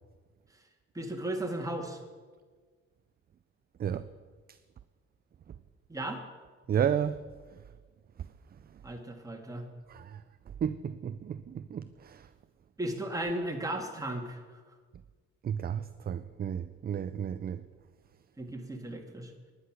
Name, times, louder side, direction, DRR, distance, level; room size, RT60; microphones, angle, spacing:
voice 1, 0.9-2.0 5.9-6.2 8.8-9.7 12.8-14.6 18.4-19.3, right 1 dB, 10° right, 1.9 m, -35 dB
voice 2, 6.7-7.2 7.5-7.6 8.2-8.3 8.7-8.8 9.9-10.2 10.6-12.3 15.4-17.7, right 8 dB, 30° right, 0.4 m, -33 dB
11.0 x 9.7 x 6.2 m
cardioid pair, 90°, 30 cm